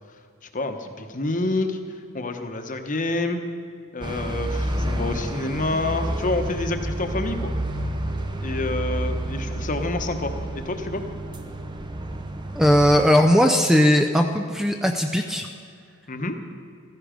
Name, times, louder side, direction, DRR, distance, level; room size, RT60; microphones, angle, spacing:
voice 1, 0.5-1.8 2.1-3.4 3.9-7.5 8.4-11.0 16.1-16.4, left 2 dB, 35° left, 6 dB, 1.0 m, -28 dB
sound 1, 4.0-13.0, right 1 dB, 20° right, 0.8 m, -29 dB
voice 2, 12.5-15.5, equal, ahead, 4 dB, 0.4 m, -18 dB
15.0 x 13.5 x 5.1 m, 2.3 s
head